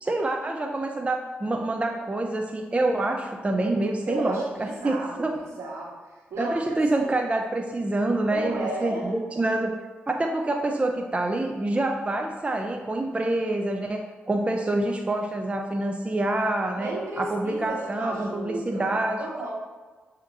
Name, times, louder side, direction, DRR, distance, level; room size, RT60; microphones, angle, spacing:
voice 1, 0.0-5.4 6.4-9.7 10.1-19.2, right 2 dB, 25° right, 2 dB, 0.5 m, -27 dB
voice 2, 4.1-5.9 6.3-6.6 6.9-7.2 8.3-9.2 16.8-19.5, right 2 dB, 75° right, -4 dB, 1.3 m, -34 dB
7.1 x 2.8 x 2.5 m, 1.3 s
supercardioid pair, 40°, 5 cm